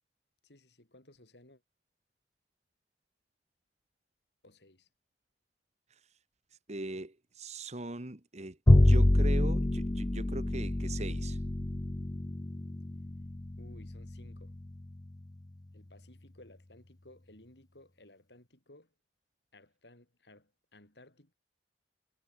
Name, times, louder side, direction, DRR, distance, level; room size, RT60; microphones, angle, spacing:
voice 1, 0.4-1.6 4.4-4.9 13.6-14.5 15.7-18.9 19.5-21.3, left 1 dB, 70° left, 5.1 m, -58 dB
voice 2, 6.7-8.6 8.8-11.4, right 2 dB, 40° right, 1.9 m, -40 dB
Bowed string instrument, 8.7-15.1, left 1 dB, 20° left, 0.6 m, -27 dB
head